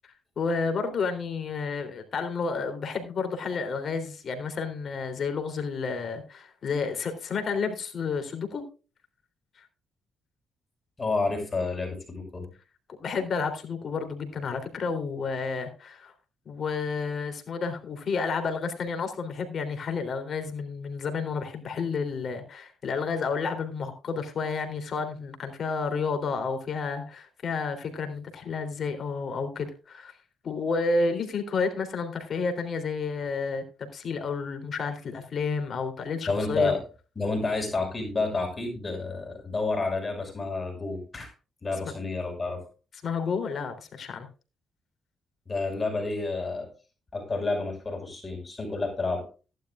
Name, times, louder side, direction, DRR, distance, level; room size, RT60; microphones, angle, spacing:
voice 1, 0.0-8.6 9.6-9.7 13.0-16.1 16.4-30.2 30.4-36.7 43.0-44.3, left 4 dB, 55° left, 7 dB, 3.4 m, -31 dB
voice 2, 11.0-12.5 36.3-36.8 37.2-41.3 41.6-42.6 45.5-46.7 47.1-49.3, left 3 dB, 30° left, 2 dB, 5.6 m, -29 dB
16.0 x 11.5 x 2.5 m, 0.32 s
cardioid pair, 75°, 0 cm